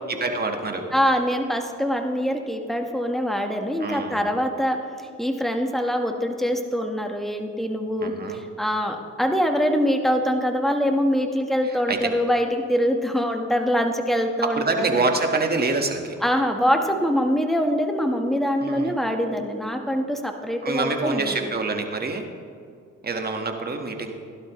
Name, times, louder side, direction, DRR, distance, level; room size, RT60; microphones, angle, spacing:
voice 1, 0.1-0.9 3.8-4.3 8.0-8.4 11.9-12.1 14.4-16.1 18.6-19.0 20.6-22.3 23.0-24.1, right 3 dB, 30° right, 4 dB, 1.5 m, -26 dB
voice 2, 0.9-4.8 5.2-15.0 16.2-21.3, equal, ahead, 4 dB, 1.3 m, -24 dB
16.5 x 11.5 x 3.1 m, 2.3 s
cardioid pair, 90°, 30 cm